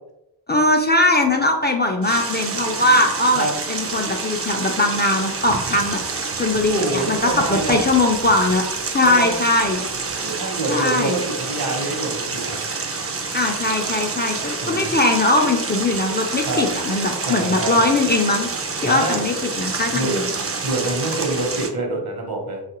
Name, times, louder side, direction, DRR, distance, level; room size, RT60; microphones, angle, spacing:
voice 1, 0.5-6.0 6.3-8.6 8.9-9.8 10.7-11.2 13.3-18.5 18.8-20.3, left 2 dB, 25° left, 1 dB, 0.4 m, -20 dB
sound 1, 2.0-21.7, right 4 dB, 35° right, 0.5 m, -28 dB
voice 2, 6.7-7.8 9.0-9.3 10.2-12.6 14.6-14.9 16.4-16.6 17.2-17.8 18.8-19.2 19.9-20.1 20.6-22.6, right 2 dB, 60° right, 1 dB, 0.9 m, -26 dB
3.2 x 2.4 x 2.9 m, 0.88 s
cardioid pair, 55°, 43 cm